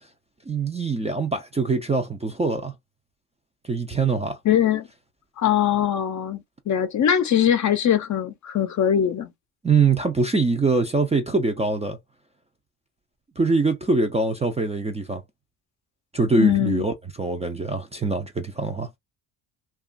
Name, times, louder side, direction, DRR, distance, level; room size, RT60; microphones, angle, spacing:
voice 1, 0.5-2.7 3.7-4.4 9.6-12.0 13.4-15.2 16.1-18.9, right 3 dB, 15° right, 0.3 m, -23 dB
voice 2, 4.4-4.9 5.4-9.3 16.4-16.9, left 10 dB, 45° left, 0.5 m, -21 dB
2.8 x 2.3 x 2.4 m
cardioid pair, 120°, 43 cm